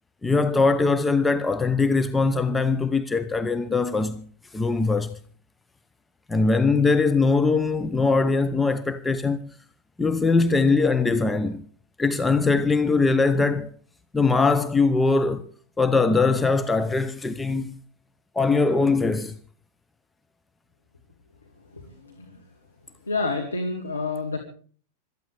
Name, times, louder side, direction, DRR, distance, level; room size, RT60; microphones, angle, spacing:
voice 1, 0.2-4.2 4.5-5.2 6.3-9.5 10.0-11.6 12.0-13.7 14.1-15.5 15.8-17.8 18.3-19.3, left 4 dB, 10° left, 0.8 m, -21 dB
voice 2, 21.7-22.4 23.0-24.4, left 3 dB, 75° left, 2.5 m, -29 dB
26.5 x 13.5 x 3.5 m
figure-of-eight pair, 90°, 0 cm